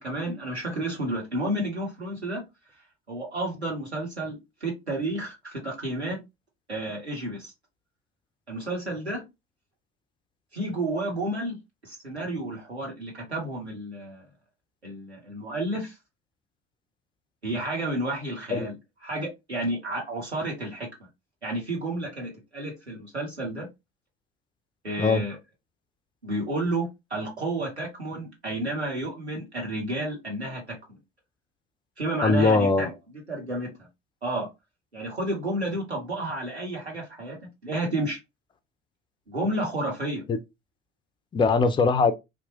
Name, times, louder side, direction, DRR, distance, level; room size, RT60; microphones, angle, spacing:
voice 1, 0.0-2.4 3.1-6.2 6.7-7.5 8.5-9.2 10.5-11.6 11.8-14.2 14.8-16.0 17.4-18.8 19.0-20.9 21.4-23.7 24.8-25.4 26.2-31.0 32.0-33.7 34.2-34.5 34.9-38.2 39.3-40.2, right 1 dB, 90° right, 0.9 m, -31 dB
voice 2, 32.2-32.9 40.3-40.4 41.3-42.1, left 4 dB, 15° left, 0.3 m, -21 dB
2.9 x 2.1 x 2.8 m
figure-of-eight pair, 60°, 32 cm